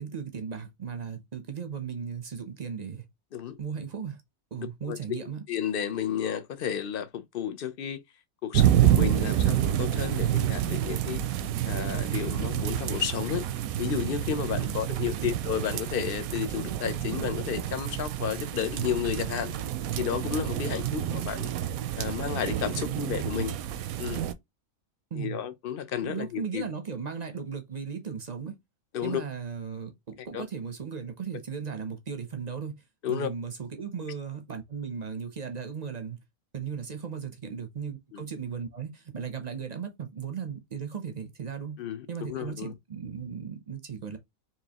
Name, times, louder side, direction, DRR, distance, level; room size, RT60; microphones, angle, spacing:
voice 1, 0.0-3.1 3.6-4.2 4.5-5.5 14.6-14.8 15.1-15.4 20.8-21.3 22.7-23.3 25.1-25.4 26.0-28.6 29.0-32.7 33.1-36.2 36.5-41.8 42.1-44.2, right 6 dB, 40° right, 0.6 m, -36 dB
voice 2, 5.5-8.0 8.4-11.2 11.6-13.4 13.8-19.5 20.0-21.5 22.0-23.5 24.0-24.3 25.1-26.7 28.9-29.2 30.3-30.4 33.0-33.3 38.1-38.2 41.8-42.7, left 9 dB, 55° left, 0.6 m, -32 dB
sound 1, 8.5-24.3, right 11 dB, 85° right, 1.0 m, -28 dB
4.6 x 2.8 x 2.9 m
omnidirectional pair, 1.4 m